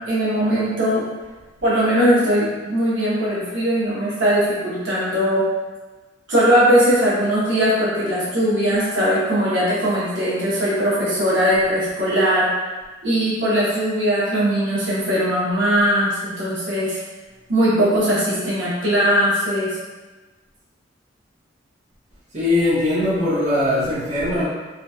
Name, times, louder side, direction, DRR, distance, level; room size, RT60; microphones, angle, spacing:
voice 1, 0.1-1.0 1.6-5.4 6.3-12.5 13.0-17.0 17.5-19.7, equal, 75° right, -10 dB, 1.3 m, -19 dB
voice 2, 22.3-24.5, left 1 dB, 40° right, -11 dB, 1.2 m, -20 dB
4.0 x 2.4 x 2.7 m, 1.2 s
head